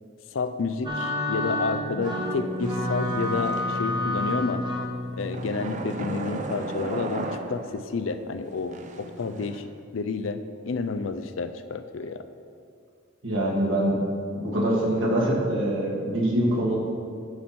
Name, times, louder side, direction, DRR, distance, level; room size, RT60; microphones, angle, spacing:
voice 1, 0.3-4.6 5.2-9.7 9.9-12.2, left 4 dB, 75° left, 10 dB, 0.5 m, -30 dB
sound 1, 0.8-6.6, left 1 dB, 25° right, 1.0 m, -30 dB
sound 2, 2.0-4.1 5.3-8.0 8.5-9.6, right 2 dB, 40° right, 0.6 m, -36 dB
voice 2, 13.2-14.0 14.3-16.8, right 1 dB, 70° right, -3 dB, 1.9 m, -24 dB
9.5 x 4.3 x 6.0 m, 2.2 s
head